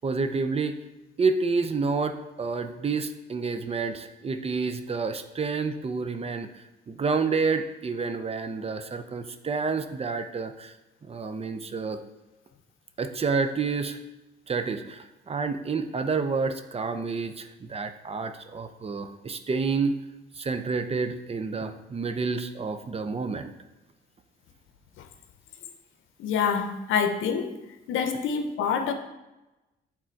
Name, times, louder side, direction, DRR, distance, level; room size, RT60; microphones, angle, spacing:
voice 1, 0.0-0.8 1.2-10.7 11.1-12.0 13.0-14.0 14.5-20.0 20.4-23.5, right 4 dB, 30° right, 8 dB, 0.6 m, -29 dB
voice 2, 26.2-27.6 27.9-28.9, left 6 dB, 85° left, 7 dB, 0.7 m, -26 dB
7.4 x 3.7 x 4.5 m, 1.0 s
cardioid pair, 90°, 20 cm